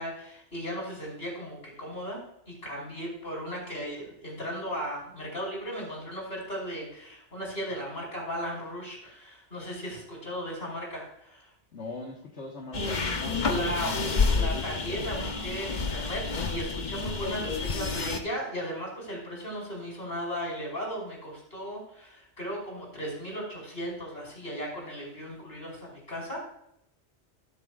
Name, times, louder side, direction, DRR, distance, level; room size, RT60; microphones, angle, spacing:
voice 1, 0.0-2.2 2.5-11.5 13.4-26.4, equal, 60° left, -3 dB, 5.5 m, -36 dB
voice 2, 11.7-13.0 13.6-14.0, left 3 dB, 75° left, 0 dB, 1.9 m, -40 dB
sound 1, 12.7-18.2, left 4 dB, 45° left, 1.0 m, -29 dB
21.5 x 7.6 x 2.5 m, 0.77 s
omnidirectional pair, 1.2 m